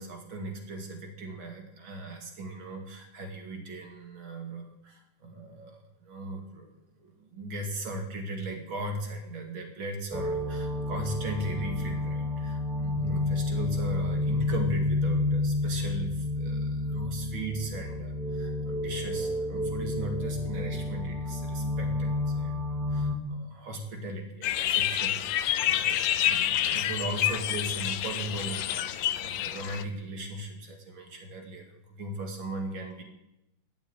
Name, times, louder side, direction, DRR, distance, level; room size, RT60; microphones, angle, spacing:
voice 1, 0.0-6.7 7.0-26.0 26.2-33.0, right 2 dB, 80° right, 3 dB, 3.1 m, -38 dB
sound 1, 10.1-23.2, left 2 dB, ahead, 2.5 m, -30 dB
sound 2, 24.4-29.8, left 11 dB, 75° left, 1.4 m, -28 dB
14.0 x 8.4 x 9.1 m, 0.89 s
omnidirectional pair, 2.1 m